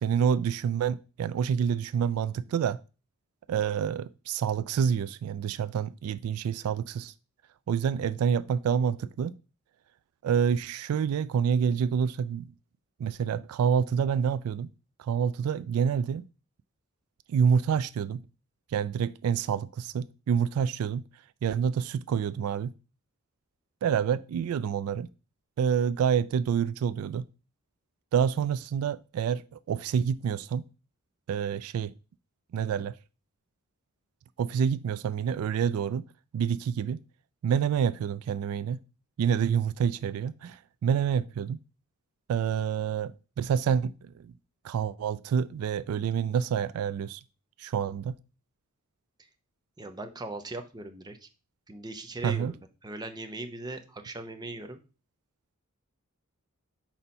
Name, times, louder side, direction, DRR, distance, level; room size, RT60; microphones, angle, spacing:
voice 1, 0.0-2.8 3.5-7.1 7.7-9.3 10.2-12.5 13.0-14.7 15.0-16.2 17.3-18.2 18.7-21.0 21.4-22.7 23.8-25.1 25.6-27.3 28.1-30.6 31.3-31.9 32.5-32.9 34.4-36.0 36.3-37.0 37.4-38.8 39.2-41.6 42.3-44.3 44.6-47.2 47.6-48.2 52.2-52.5, right 7 dB, 80° right, 0.3 m, -27 dB
voice 2, 49.8-51.3 51.7-52.6 52.8-54.8, right 2 dB, 20° right, 0.7 m, -39 dB
4.4 x 4.3 x 5.3 m
head